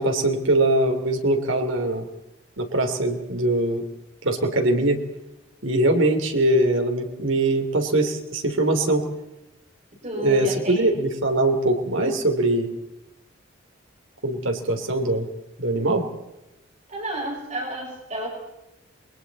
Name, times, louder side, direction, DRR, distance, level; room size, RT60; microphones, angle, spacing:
voice 1, 0.0-2.1 2.6-3.8 4.2-5.0 5.6-9.1 10.2-12.7 14.2-15.3 15.6-16.0, right 2 dB, 75° right, 4 dB, 3.3 m, -22 dB
voice 2, 10.0-10.9 16.9-18.3, right 1 dB, 35° right, -2 dB, 6.0 m, -31 dB
28.5 x 22.5 x 4.3 m, 0.93 s
head